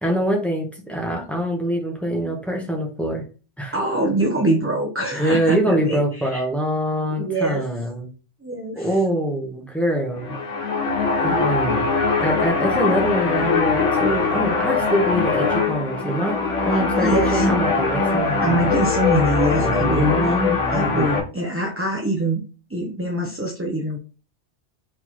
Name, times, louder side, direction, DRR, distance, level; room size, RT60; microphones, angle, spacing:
voice 1, 0.0-3.2 3.6-3.7 5.1-8.1 8.8-10.3 11.2-11.9 12.2-16.4 16.6-18.5 19.6-20.9, right 1 dB, ahead, 1 dB, 1.1 m, -24 dB
voice 2, 3.7-6.4 7.2-7.6 8.4-9.0 16.7-17.5 18.4-20.3 20.7-22.4 22.7-24.0, right 1 dB, 15° right, 0 dB, 0.6 m, -24 dB
sound 1, 10.1-21.2, left 4 dB, 85° left, 1.3 m, -22 dB
4.4 x 3.9 x 3.1 m, 0.34 s
omnidirectional pair, 1.2 m